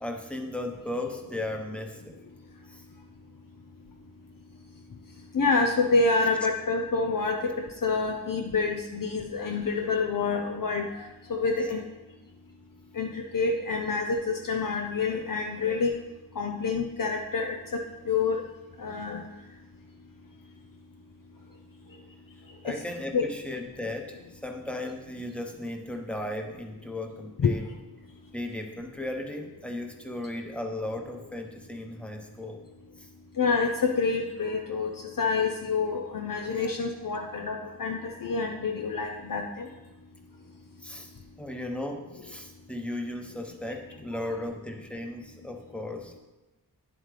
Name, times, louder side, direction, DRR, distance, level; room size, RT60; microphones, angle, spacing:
voice 1, 0.0-2.2 2.7-2.8 22.6-27.7 28.3-32.6 33.0-33.1 36.5-36.7 40.8-41.1 41.4-46.2, left 1 dB, 5° left, 3 dB, 1.0 m, -36 dB
voice 2, 5.3-7.5 7.8-11.8 13.0-15.9 16.4-17.8 18.1-18.4 18.8-19.2 22.7-22.8 23.1-23.2 27.4-27.6 33.4-34.9 35.2-39.7, left 4 dB, 60° left, 3 dB, 0.6 m, -27 dB
9.5 x 7.7 x 3.3 m, 1.1 s
wide cardioid pair, 75°, 38 cm